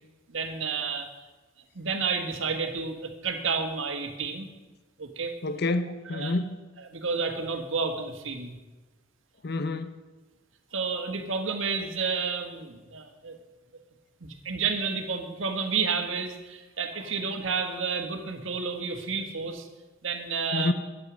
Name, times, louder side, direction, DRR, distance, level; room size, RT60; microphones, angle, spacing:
voice 1, 0.3-1.1 1.7-4.5 5.0-5.4 6.1-6.3 6.8-8.5 10.7-13.3 14.2-19.7 20.0-20.7, right 5 dB, 75° right, 5 dB, 1.5 m, -30 dB
voice 2, 5.4-6.6 9.4-10.0 20.5-20.7, left 2 dB, 55° left, 11 dB, 0.7 m, -28 dB
11.5 x 8.7 x 6.2 m, 1.2 s
head